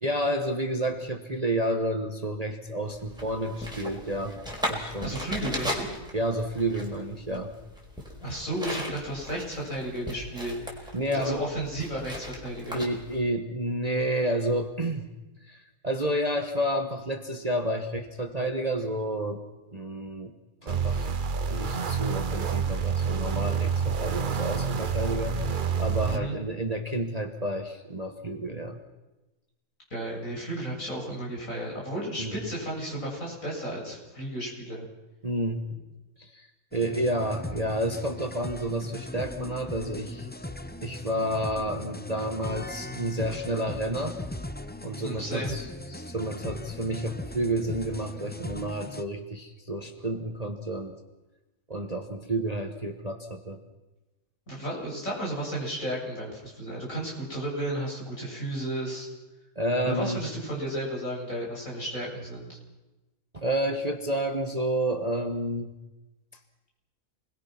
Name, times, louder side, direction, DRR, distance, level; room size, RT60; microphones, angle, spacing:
voice 1, 0.0-4.4 4.7-5.2 6.1-7.5 10.9-11.4 11.9-12.0 12.7-15.1 15.4-19.4 19.7-20.3 20.6-21.1 21.5-28.8 32.2-32.4 35.2-35.6 36.2-40.3 40.8-44.2 44.8-50.9 51.7-53.6 59.5-60.2 63.3-65.7, right 1 dB, 25° right, 5 dB, 1.4 m, -30 dB
sound 1, 2.9-13.2, equal, 5° right, 4.6 m, -38 dB
voice 2, 5.0-5.9 8.2-12.8 26.1-26.4 29.9-34.9 45.0-45.6 54.5-59.1 59.8-62.6, right 1 dB, 55° left, -3 dB, 7.8 m, -33 dB
sound 2, 20.7-26.2, right 6 dB, 40° right, 0.8 m, -28 dB
sound 3, 36.7-49.0, left 1 dB, 15° left, 0.3 m, -39 dB
28.0 x 21.0 x 6.0 m, 1.1 s
omnidirectional pair, 1.6 m